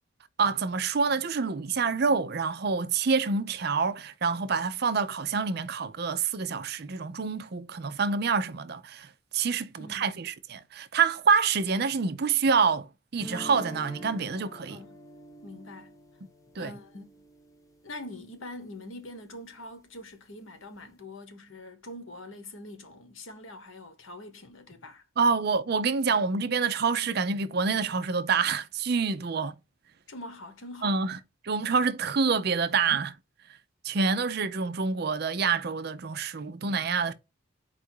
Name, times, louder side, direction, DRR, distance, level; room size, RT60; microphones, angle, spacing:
voice 1, 0.4-14.8 16.6-16.7 25.2-29.5 30.8-31.2 31.4-33.2 33.8-37.1, right 5 dB, 50° right, 0.5 m, -27 dB
voice 2, 9.8-10.2 14.7-15.0 15.4-16.0 16.6-17.3 17.8-25.0 30.1-31.0, left 1 dB, 70° left, 1.2 m, -44 dB
sound 1, 13.2-18.1, equal, 15° left, 0.9 m, -46 dB
4.6 x 2.5 x 4.4 m
head